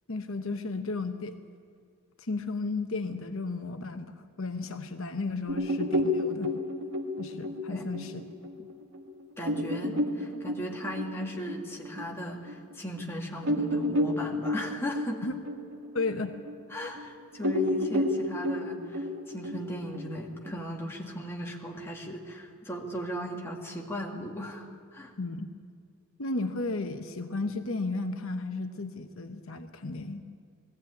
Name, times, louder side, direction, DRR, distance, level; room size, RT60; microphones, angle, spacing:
voice 1, 0.1-1.3 2.2-6.5 7.2-8.1 8.6-8.7 15.2-15.3 15.9-16.3 25.2-25.5 26.2-30.2, left 3 dB, 65° left, 6 dB, 1.0 m, -34 dB
sound 1, 5.5-12.5 13.0-13.1 13.4-17.0 17.4-20.5, left 1 dB, 75° right, 1.8 m, -31 dB
voice 2, 9.4-15.3 16.7-25.1, equal, 10° left, -1 dB, 2.0 m, -37 dB
19.5 x 15.0 x 9.4 m, 2.2 s
head